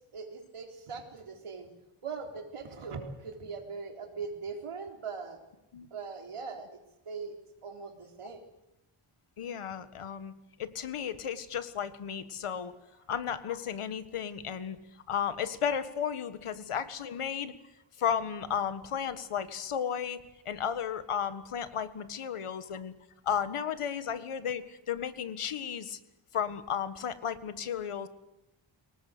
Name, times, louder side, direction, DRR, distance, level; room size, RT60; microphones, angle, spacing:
voice 1, 0.1-1.7 2.0-5.4 5.9-7.4 7.6-8.4, right 5 dB, 90° right, 3 dB, 3.7 m, -41 dB
voice 2, 9.4-10.3 10.6-12.8 13.1-14.8 15.1-17.5 18.0-22.9 23.2-26.0 26.3-28.1, left 8 dB, 85° left, 12 dB, 1.7 m, -34 dB
24.5 x 19.0 x 8.0 m, 0.90 s
wide cardioid pair, 140°, 50 cm